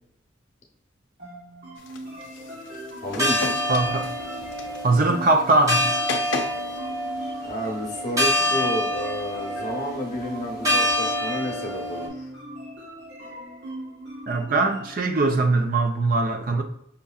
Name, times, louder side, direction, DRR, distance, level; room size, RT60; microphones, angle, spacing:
sound 1, 1.2-14.9, right 1 dB, 60° right, 1.1 m, -40 dB
sound 2, 1.8-6.8, left 4 dB, 75° left, 0.5 m, -36 dB
voice 1, 3.0-3.5 6.2-6.3 7.4-12.3, equal, 40° left, 0.8 m, -31 dB
sound 3, 3.0-12.1, left 1 dB, 15° right, 0.8 m, -27 dB
voice 2, 3.7-4.1 4.8-5.9 14.3-16.6, right 2 dB, 45° right, 0.4 m, -21 dB
5.7 x 2.6 x 2.3 m
head